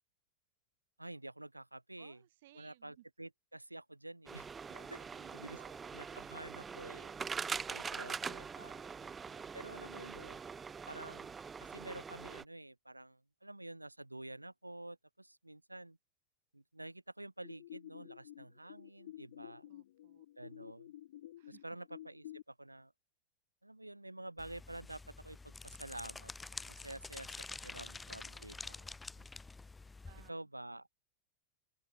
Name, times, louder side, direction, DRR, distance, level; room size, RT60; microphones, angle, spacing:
voice 1, 1.0-2.2 2.5-4.5 4.7-5.0 5.3-5.6 5.9-7.1 7.7-8.9 9.5-10.4 10.9-16.0 16.5-19.7 20.4-20.9 21.5-22.9 23.6-27.4 27.6-28.8 30.3-30.9, right 1 dB, 85° right, 3.7 m, -49 dB
voice 2, 2.0-3.0 4.6-6.6 8.9-9.5 19.7-20.3 21.4-21.6 28.3-29.3 29.8-30.4, right 15 dB, 55° right, 4.5 m, -64 dB
sound 1, 4.3-12.4, right 5 dB, 15° right, 1.5 m, -43 dB
sound 2, 17.4-22.4, left 13 dB, 60° left, 7.6 m, -52 dB
sound 3, 24.4-30.3, left 3 dB, 10° left, 2.1 m, -48 dB
open air
figure-of-eight pair, 90°, 0 cm